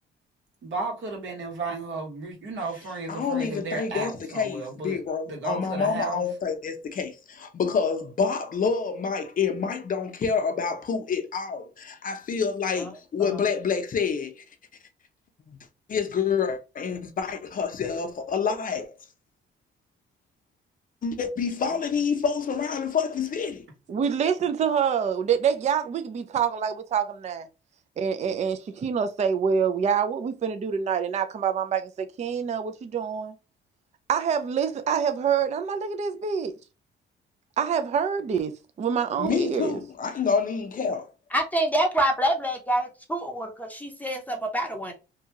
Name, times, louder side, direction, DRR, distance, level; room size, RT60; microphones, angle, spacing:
voice 1, 0.6-6.2, right 3 dB, 70° right, 1.4 m, -34 dB
voice 2, 3.1-14.4 15.5-15.6 15.9-18.9 21.0-23.6 39.1-41.1, left 6 dB, 45° left, 0.6 m, -28 dB
voice 3, 23.9-27.5 28.0-33.3 34.1-36.5 37.6-38.5 38.8-39.8, right 7 dB, 35° right, 0.4 m, -26 dB
voice 4, 41.3-44.9, right 1 dB, 10° left, 0.7 m, -26 dB
2.7 x 2.3 x 2.8 m
cardioid pair, 90°, 20 cm